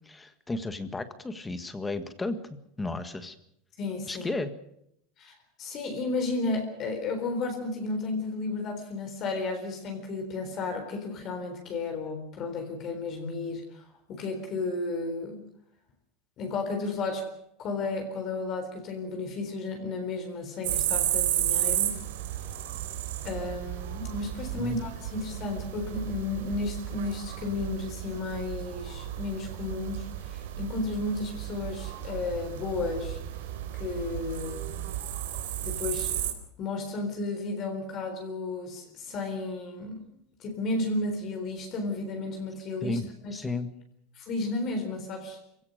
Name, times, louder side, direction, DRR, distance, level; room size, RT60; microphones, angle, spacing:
voice 1, 0.1-3.3 4.1-4.5 24.5-24.8 42.8-43.0 43.3-43.7, left 3 dB, 10° left, 11 dB, 1.6 m, -33 dB
voice 2, 3.8-4.4 5.2-13.8 14.1-15.5 16.4-17.3 17.6-22.0 23.2-33.2 33.8-34.7 35.6-36.3 36.6-40.0 40.4-43.4 44.2-45.4, left 3 dB, 35° left, 4 dB, 3.9 m, -33 dB
sound 1, 20.6-36.3, right 12 dB, 85° right, 3.9 m, -33 dB
26.0 x 16.5 x 6.6 m, 0.76 s
supercardioid pair, 160°, 0 cm